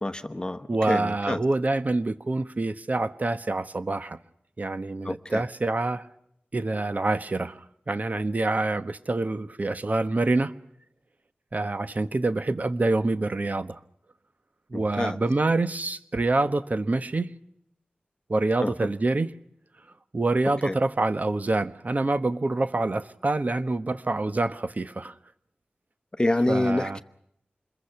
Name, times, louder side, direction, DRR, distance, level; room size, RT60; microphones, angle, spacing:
voice 1, 0.0-1.4 5.0-5.4 14.7-15.2 18.6-18.7 20.6-20.8 26.2-27.0, left 1 dB, 25° left, 1.0 m, -27 dB
voice 2, 0.7-4.2 4.6-6.0 6.5-10.5 11.5-13.8 14.7-17.3 18.3-19.3 20.1-25.1 26.5-27.0, right 2 dB, 45° right, 1.2 m, -26 dB
27.0 x 22.0 x 5.9 m
wide cardioid pair, 85°, 4 cm